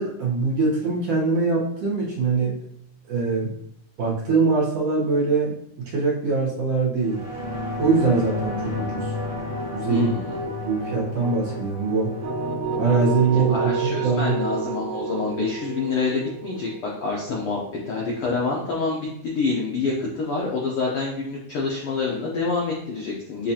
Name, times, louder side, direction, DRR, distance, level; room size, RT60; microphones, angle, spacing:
voice 1, 0.0-2.6 3.1-3.5 4.0-5.5 5.9-7.2 7.8-9.1 9.7-10.1 10.6-12.1 12.8-14.4, right 4 dB, 65° right, -4 dB, 2.0 m, -22 dB
sound 1, 7.0-16.0 16.4-16.5, left 1 dB, 25° right, 1.4 m, -33 dB
voice 2, 9.9-10.4 13.5-23.5, left 4 dB, 90° left, -3 dB, 1.2 m, -27 dB
sound 2, 12.2-18.1, right 5 dB, 80° right, 1.0 m, -29 dB
7.2 x 2.4 x 2.7 m, 0.73 s
omnidirectional pair, 3.4 m